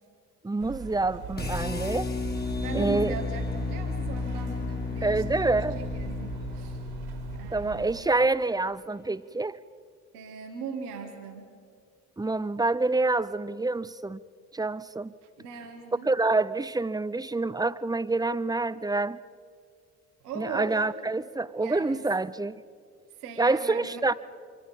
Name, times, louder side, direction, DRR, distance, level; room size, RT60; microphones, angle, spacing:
voice 1, 0.4-2.1 2.7-3.1 5.0-5.8 7.5-9.6 12.2-14.2 14.5-15.1 16.0-19.2 20.4-22.6 23.4-24.1, right 3 dB, 10° right, 16 dB, 0.7 m, -27 dB
sound 1, 0.6-8.0, right 6 dB, 65° right, 3.1 m, -41 dB
sound 2, 1.4-7.5, left 3 dB, 20° left, 2.2 m, -32 dB
voice 2, 2.6-5.5 5.8-6.8 7.3-8.0 10.1-11.5 15.2-16.1 20.2-21.0 21.6-22.0 23.2-24.1, right 5 dB, 85° right, 2 dB, 2.1 m, -39 dB
26.0 x 24.5 x 5.4 m, 2.2 s
hypercardioid pair, 50°, 45 cm